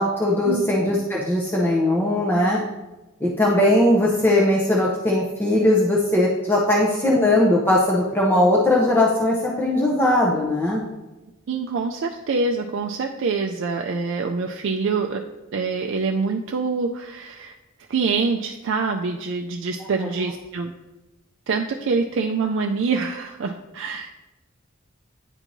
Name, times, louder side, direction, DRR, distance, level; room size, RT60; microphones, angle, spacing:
voice 1, 0.0-2.6 3.2-10.9 20.0-20.1, left 1 dB, 10° left, -4 dB, 0.6 m, -19 dB
voice 2, 11.5-15.2 15.5-17.5 17.9-20.7 21.5-24.1, right 4 dB, 65° right, 2 dB, 0.4 m, -25 dB
9.7 x 4.5 x 2.6 m, 1.1 s
head